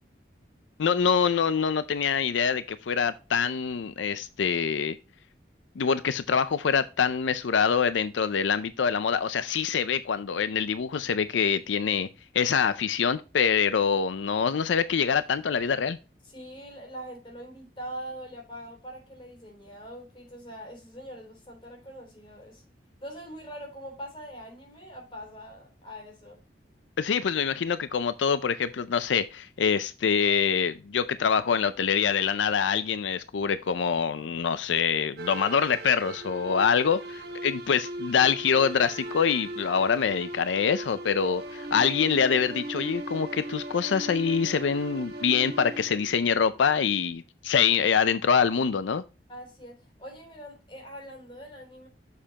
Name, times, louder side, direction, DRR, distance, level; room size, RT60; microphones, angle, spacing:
voice 1, 0.8-5.0 5.8-12.1 12.3-16.0 27.0-49.0, left 6 dB, 90° left, 0.5 m, -25 dB
voice 2, 16.2-22.6 23.0-26.4 49.3-51.9, equal, 30° left, 3.3 m, -43 dB
sound 1, 35.2-47.0, right 1 dB, 60° right, 1.5 m, -38 dB
7.3 x 6.7 x 2.8 m
head